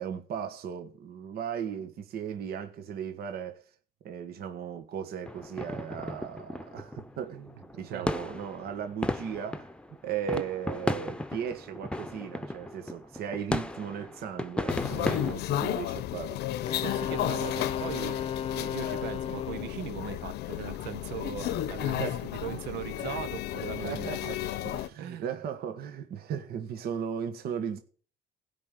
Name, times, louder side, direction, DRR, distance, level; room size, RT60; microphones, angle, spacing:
voice 1, 0.0-3.6 4.0-9.7 10.0-16.4 21.8-22.3 23.8-24.4 24.6-27.8, right 8 dB, 65° right, 1.5 m, -36 dB
sound 1, 5.3-15.3, left 1 dB, 5° left, 0.9 m, -35 dB
sound 2, 14.7-24.9, left 13 dB, 75° left, 0.8 m, -33 dB
voice 2, 14.9-15.3 16.7-18.2 18.5-24.4 24.7-25.3, right 10 dB, 85° right, 1.1 m, -39 dB
Wind instrument woodwind instrument, 16.7-19.8, left 8 dB, 35° left, 0.8 m, -34 dB
16.0 x 5.5 x 9.1 m
cardioid pair, 110°, 17 cm